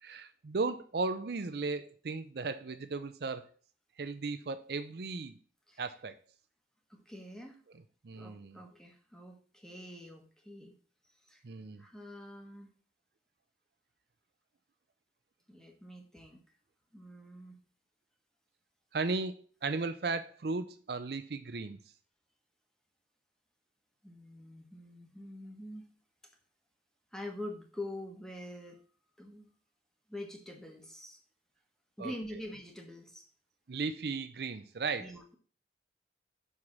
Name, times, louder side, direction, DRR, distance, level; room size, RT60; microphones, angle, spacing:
voice 1, 0.0-3.5 4.0-5.4 5.8-6.2 8.0-8.6 11.4-11.8 18.9-21.8 32.0-32.1 33.7-35.1, right 4 dB, 60° right, 10 dB, 0.5 m, -36 dB
voice 2, 6.9-7.6 8.1-10.8 11.3-11.4 11.8-12.7 15.5-16.4 16.9-17.6 24.0-25.9 27.1-28.8 29.2-29.5 30.1-31.2 32.0-33.2 35.0-35.4, left 1 dB, 5° left, 3 dB, 1.1 m, -45 dB
5.5 x 4.9 x 5.9 m, 0.41 s
head